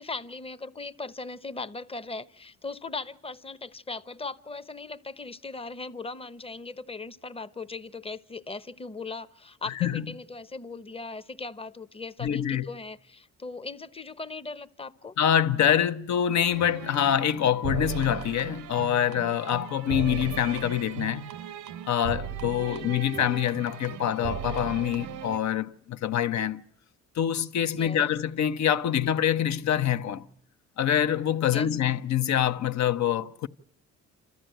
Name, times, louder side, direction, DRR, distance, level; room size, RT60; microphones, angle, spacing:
voice 1, 0.0-15.1 22.7-23.0 27.7-28.1 31.5-31.8, left 3 dB, 20° left, 0.8 m, -39 dB
voice 2, 12.2-12.7 15.2-21.3 21.9-26.6 27.1-30.3 30.8-33.5, left 10 dB, 65° left, 0.9 m, -25 dB
sound 1, 16.4-25.4, right 9 dB, 85° right, 0.9 m, -37 dB
27.5 x 14.0 x 9.1 m
cardioid pair, 90°, 30 cm